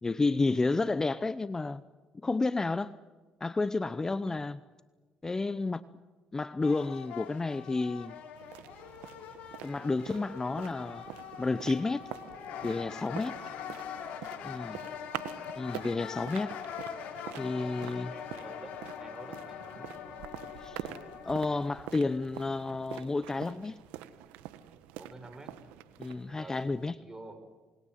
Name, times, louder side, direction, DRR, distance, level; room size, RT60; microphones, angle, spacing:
voice 1, 0.0-1.8 2.2-2.9 3.4-4.6 5.2-5.8 6.3-8.2 9.6-11.0 11.4-12.0 12.6-13.3 14.4-14.8 15.6-16.5 17.4-18.1 20.6-20.9 21.3-23.8 26.0-27.0, left 3 dB, 25° left, 0.8 m, -31 dB
sound 1, 6.6-22.1, left 8 dB, 70° left, 3.8 m, -43 dB
sound 2, 8.4-26.9, right 12 dB, 85° right, 1.4 m, -46 dB
voice 2, 14.6-15.0 17.6-19.9 25.0-25.5 26.3-26.7 27.0-27.4, right 2 dB, 25° right, 5.5 m, -50 dB
28.0 x 21.5 x 7.7 m
supercardioid pair, 70°, 2 cm